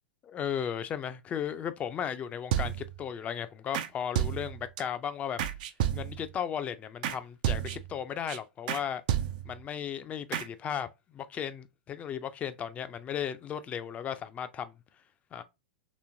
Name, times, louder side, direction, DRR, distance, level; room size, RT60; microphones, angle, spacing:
voice 1, 0.2-5.4 5.9-9.0 9.4-14.7 15.3-15.4, left 8 dB, 25° left, 0.5 m, -35 dB
sound 1, 2.5-3.0 3.7-3.9 4.1-4.8 5.4-6.3 7.0-7.2 7.4-8.0 8.3-8.4 8.7-8.8 9.1-9.6 10.3-10.5, right 11 dB, 55° right, 0.5 m, -31 dB
3.3 x 3.1 x 2.7 m
hypercardioid pair, 100°, 5 cm